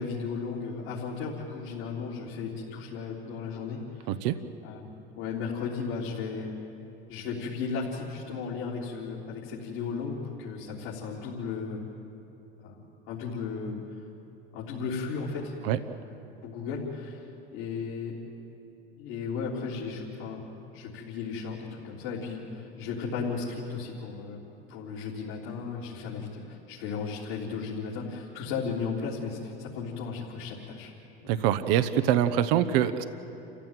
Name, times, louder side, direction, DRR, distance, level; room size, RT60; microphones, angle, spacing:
voice 1, 0.0-4.1 4.6-4.9 5.2-6.5 7.1-11.8 12.6-12.8 13.1-13.8 14.5-15.5 16.4-18.2 19.0-20.4 20.7-24.4 24.7-30.9 31.2-31.3, left 5 dB, 65° left, -5 dB, 3.7 m, -35 dB
voice 2, 4.1-4.4 15.6-15.8 31.3-33.0, right 11 dB, 65° right, 9 dB, 1.0 m, -24 dB
28.5 x 15.5 x 9.2 m, 3.0 s
hypercardioid pair, 85°, 31 cm